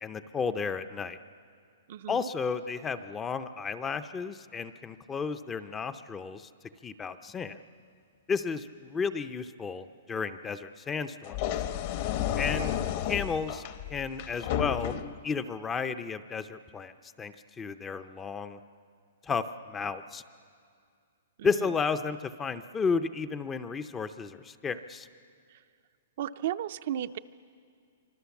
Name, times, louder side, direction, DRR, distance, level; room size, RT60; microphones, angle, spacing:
voice 1, 0.0-1.2 2.1-6.5 6.8-7.6 8.3-11.4 12.4-12.8 13.1-13.6 13.9-14.9 15.2-16.9 17.2-18.6 19.2-20.2 21.4-25.1, left 5 dB, 10° left, 11 dB, 0.6 m, -33 dB
voice 2, 1.9-2.3 12.6-12.8 21.4-21.5 26.2-27.2, right 11 dB, 50° right, 10 dB, 0.5 m, -34 dB
sound 1, 11.2-15.2, left 10 dB, 40° left, 1.0 m, -32 dB
26.0 x 25.0 x 7.2 m, 2.3 s
hypercardioid pair, 165°, 0 cm